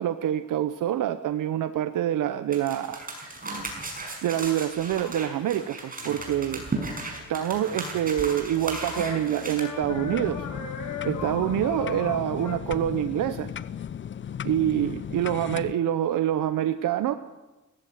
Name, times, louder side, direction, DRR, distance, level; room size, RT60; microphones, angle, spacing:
voice 1, 0.0-3.1 4.2-6.6 7.3-10.5 11.0-13.5 14.4-17.1, right 11 dB, 80° right, 10 dB, 1.0 m, -26 dB
sound 1, 2.5-9.6, right 2 dB, 25° right, 5.9 m, -35 dB
sound 2, 6.0-12.6, left 6 dB, 75° left, 3.5 m, -39 dB
sound 3, 9.8-15.7, left 8 dB, 40° left, 0.6 m, -36 dB
18.5 x 15.5 x 9.3 m, 1.1 s
cardioid pair, 110°, 31 cm